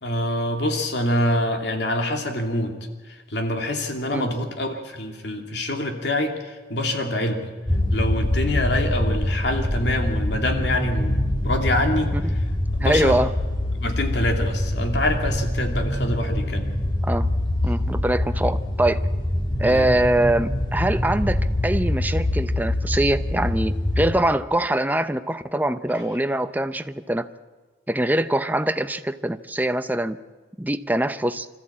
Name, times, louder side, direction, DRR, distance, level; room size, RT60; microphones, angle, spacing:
voice 1, 0.0-2.8 3.0-7.5 7.9-12.4 12.7-13.2 13.7-16.7 19.5-19.9 25.9-26.0, left 1 dB, 70° left, 3 dB, 2.7 m, -26 dB
sound 1, 7.7-24.1, left 1 dB, 25° left, 1.8 m, -24 dB
voice 2, 12.8-13.3 17.0-17.3 17.6-19.0 19.6-27.3 27.9-30.2 30.6-31.5, right 1 dB, 10° right, 10 dB, 0.7 m, -23 dB
26.0 x 14.0 x 8.6 m, 1.3 s
head